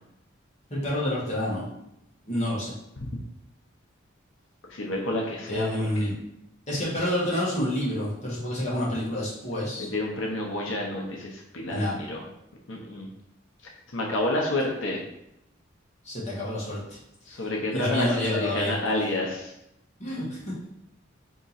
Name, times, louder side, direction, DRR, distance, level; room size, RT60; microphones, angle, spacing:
voice 1, 0.7-1.6 2.3-2.7 5.5-6.1 6.7-9.9 11.7-11.9 16.0-17.0 17.7-18.7 20.0-20.4, left 1 dB, 35° left, -6 dB, 1.3 m, -28 dB
voice 2, 4.7-5.7 6.0-6.1 9.8-12.2 12.7-13.1 13.9-15.0 17.3-19.5, left 1 dB, 75° left, -1 dB, 0.7 m, -29 dB
3.7 x 2.9 x 4.0 m, 0.82 s
head